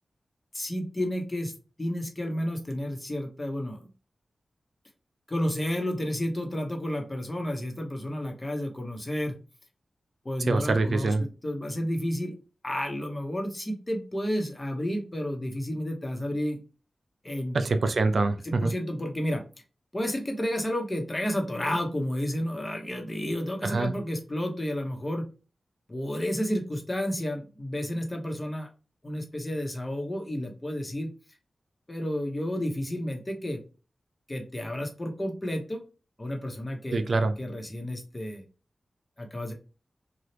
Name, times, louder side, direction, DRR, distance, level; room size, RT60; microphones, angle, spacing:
voice 1, 0.5-1.5 1.8-3.9 5.3-9.3 10.2-12.3 12.6-16.6 17.2-17.6 18.4-19.4 19.9-25.3 25.9-28.7 29.0-31.1 31.9-33.6 34.3-35.8 36.2-37.0 37.4-38.4 39.2-39.5, equal, 30° left, 3 dB, 1.0 m, -31 dB
voice 2, 10.5-11.2 17.5-18.7 23.6-23.9 36.9-37.4, right 3 dB, 70° right, 8 dB, 0.3 m, -25 dB
2.8 x 2.3 x 3.2 m, 0.33 s
cardioid pair, 45°, 0 cm